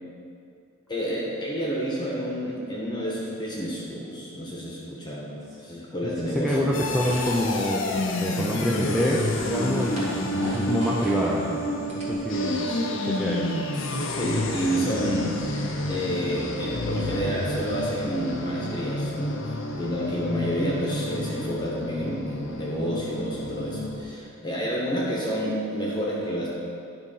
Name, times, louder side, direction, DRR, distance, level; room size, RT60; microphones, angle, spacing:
voice 1, 0.9-5.3 5.6-6.7 12.7-12.8 13.8-15.6 15.9-26.5, equal, 20° left, -4 dB, 1.2 m, -29 dB
voice 2, 6.0-7.8 8.2-13.5, equal, ahead, -6 dB, 0.5 m, -27 dB
sound 1, 6.7-24.0, left 1 dB, 65° left, 0.8 m, -30 dB
sound 2, 6.9-7.7 8.8-8.9 9.3-11.2 11.6-12.7, equal, 30° right, 1.8 m, -38 dB
11.0 x 4.1 x 5.6 m, 2.5 s
head